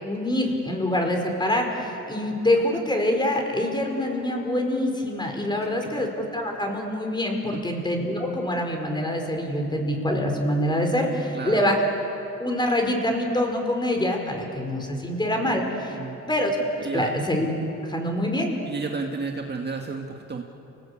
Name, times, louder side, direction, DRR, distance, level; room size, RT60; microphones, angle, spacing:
voice 1, 0.0-11.8 12.4-16.0 16.3-16.6 16.9-17.5 17.8-18.5, left 1 dB, 15° left, 2 dB, 5.3 m, -25 dB
voice 2, 11.3-11.7 15.9-16.2 16.8-17.2 18.7-20.4, right 4 dB, 35° right, 2 dB, 2.0 m, -32 dB
29.5 x 19.0 x 8.8 m, 2.9 s
cardioid pair, 90°, 30 cm